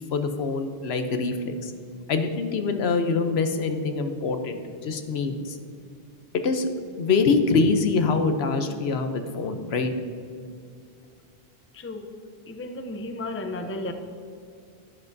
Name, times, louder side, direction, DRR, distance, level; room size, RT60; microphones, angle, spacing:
voice 1, 0.1-1.7 2.1-5.6 6.4-6.7 7.0-9.9, left 4 dB, 85° left, 7 dB, 1.0 m, -24 dB
voice 2, 11.7-12.1 12.5-13.9, left 2 dB, 15° left, 6 dB, 0.5 m, -33 dB
11.0 x 11.0 x 2.6 m, 2.3 s
omnidirectional pair, 1.0 m